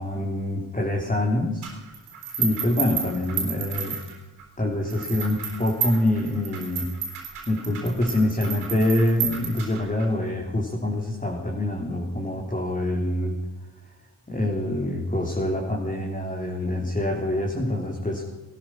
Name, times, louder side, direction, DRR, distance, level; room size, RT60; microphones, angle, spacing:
voice 1, 0.0-1.7 2.4-4.0 4.6-6.9 7.5-13.4 14.3-18.2, left 1 dB, 15° left, -1 dB, 3.2 m, -25 dB
sound 1, 1.6-4.4 4.9-10.0, right 7 dB, 85° right, 3.9 m, -31 dB
18.5 x 12.5 x 6.1 m, 1.1 s
supercardioid pair, 55°, 49 cm